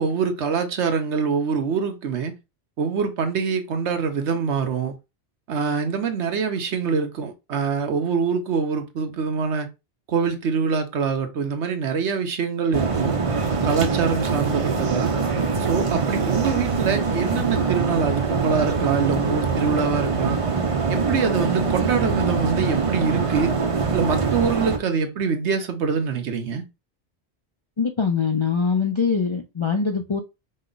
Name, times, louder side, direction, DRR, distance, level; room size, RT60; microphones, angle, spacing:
voice 1, 0.0-2.3 2.8-4.9 5.5-9.7 10.1-13.1 13.6-15.1 15.6-20.4 20.9-23.5 23.9-26.6, right 5 dB, 80° right, 1.1 m, -24 dB
sound 1, 12.7-24.8, right 4 dB, 35° right, 0.6 m, -23 dB
voice 2, 27.8-30.2, left 5 dB, 45° left, 0.3 m, -23 dB
5.3 x 2.3 x 3.8 m
omnidirectional pair, 1.1 m